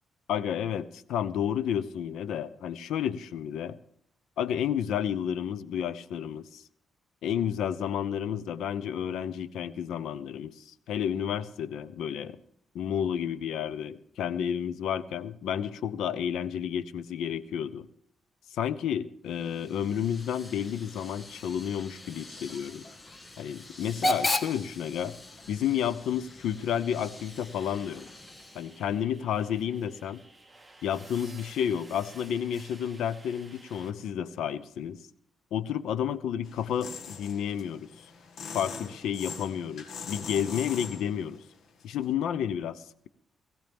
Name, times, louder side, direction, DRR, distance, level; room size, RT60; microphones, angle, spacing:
voice 1, 0.3-3.8 4.4-6.6 7.2-12.4 12.7-17.9 18.5-22.8 23.4-25.1 25.5-28.1 28.5-30.2 30.8-35.0 35.5-37.9 38.5-41.4 41.8-43.1, left 9 dB, 90° left, 15 dB, 0.8 m, -31 dB
Hiss / Train / Alarm, 19.3-28.9, left 1 dB, 30° left, 1.6 m, -37 dB
sound 1, 26.8-33.9, right 2 dB, 10° right, 2.0 m, -53 dB
sound 2, 36.4-41.4 41.8-42.1, left 5 dB, 70° left, 1.9 m, -42 dB
19.5 x 15.0 x 3.6 m, 0.67 s
cardioid pair, 85°, 0 cm